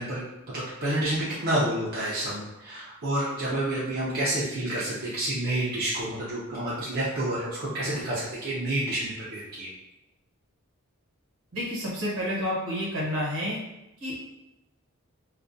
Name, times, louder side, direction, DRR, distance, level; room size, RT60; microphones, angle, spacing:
voice 1, 0.0-9.7, right 1 dB, 45° right, -8 dB, 0.5 m, -29 dB
voice 2, 11.5-13.6 14.0-14.3, equal, 70° right, -4 dB, 1.0 m, -30 dB
2.3 x 2.2 x 2.5 m, 0.92 s
head